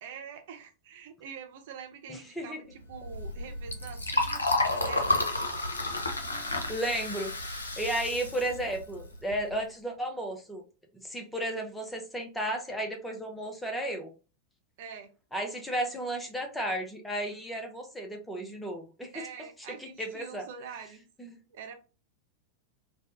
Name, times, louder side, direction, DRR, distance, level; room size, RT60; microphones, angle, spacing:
voice 1, 0.0-5.2 14.8-15.1 19.1-21.0 21.5-21.7, right 6 dB, 55° right, 5 dB, 0.5 m, -45 dB
voice 2, 2.1-2.6 6.7-10.6 11.0-14.1 15.3-19.2 19.8-20.4 21.2-21.4, right 1 dB, 5° left, 3 dB, 0.7 m, -34 dB
Liquid, 2.9-9.6, left 2 dB, 80° left, 0.6 m, -31 dB
3.3 x 2.2 x 2.6 m, 0.33 s
figure-of-eight pair, 90°, 0 cm